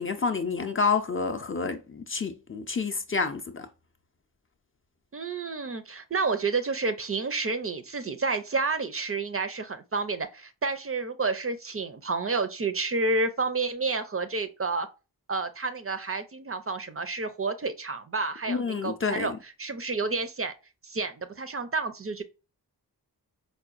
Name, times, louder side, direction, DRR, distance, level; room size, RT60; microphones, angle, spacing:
voice 1, 0.0-3.7 18.5-19.4, left 4 dB, 35° left, 0.4 m, -29 dB
voice 2, 5.1-14.9 15.3-20.5 20.8-22.2, right 3 dB, 40° right, 0.4 m, -30 dB
4.7 x 2.2 x 2.4 m
wide cardioid pair, 90°, 38 cm